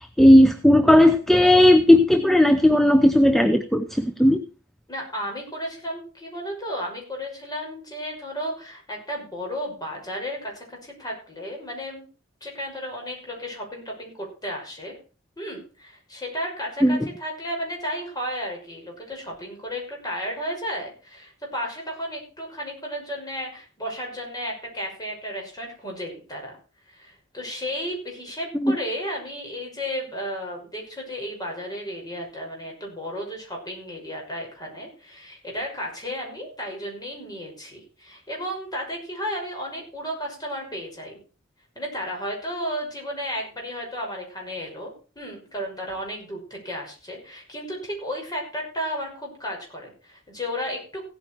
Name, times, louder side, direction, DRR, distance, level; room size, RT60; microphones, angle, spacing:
voice 1, 0.2-4.4 16.8-17.0 28.6-28.8, left 1 dB, ahead, 9 dB, 0.7 m, -16 dB
voice 2, 4.9-12.0 12.4-14.9 15.4-26.6 26.9-41.2 41.8-51.1, equal, 20° left, 0 dB, 5.8 m, -33 dB
16.0 x 8.9 x 4.5 m, 0.37 s
head